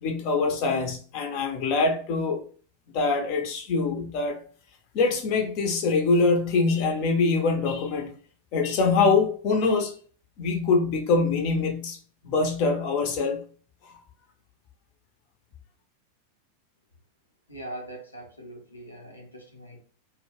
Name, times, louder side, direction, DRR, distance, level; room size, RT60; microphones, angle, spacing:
voice 1, 0.0-2.4 2.9-4.4 4.9-8.1 8.5-9.9 10.4-12.0 12.2-13.4, left 4 dB, 45° left, 0.6 m, -24 dB
voice 2, 17.5-19.8, right 1 dB, 80° left, 0.7 m, -41 dB
2.2 x 2.1 x 3.3 m
figure-of-eight pair, 90°, 0 cm